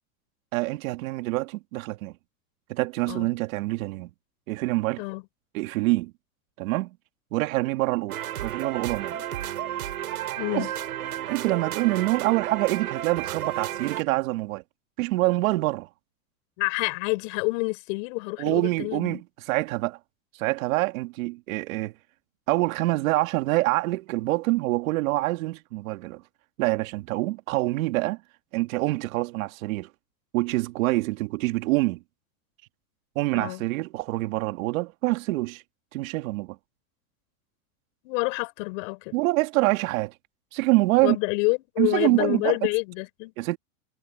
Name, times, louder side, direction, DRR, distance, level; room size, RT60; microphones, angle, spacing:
voice 1, 0.5-2.1 2.7-4.1 4.5-5.0 5.5-6.1 6.6-7.0 7.3-9.2 10.5-10.7 11.3-14.6 15.0-15.9 18.4-20.0 20.3-21.9 22.5-26.2 26.6-28.2 28.5-29.9 30.3-32.0 33.2-35.6 35.9-36.6 39.1-40.1 40.5-41.2 41.8-42.6 43.4-43.6, right 20 dB, 65° right, 2.2 m, -26 dB
sound 1, 8.1-14.0, right 12 dB, 90° right, 5.9 m, -32 dB
voice 2, 10.4-10.7 16.6-19.2 33.3-33.6 38.0-39.1 41.0-43.3, left 30 dB, 60° left, 5.6 m, -28 dB
supercardioid pair, 130°, 43 cm